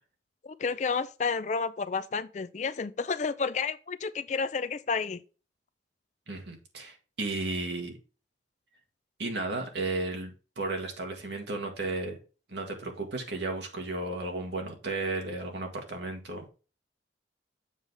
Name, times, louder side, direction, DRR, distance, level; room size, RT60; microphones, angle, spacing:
voice 1, 0.4-5.2, left 5 dB, 40° left, 0.4 m, -31 dB
voice 2, 6.3-8.0 9.2-12.2 12.5-16.4, right 2 dB, 65° right, 1.7 m, -34 dB
7.3 x 5.5 x 3.4 m
head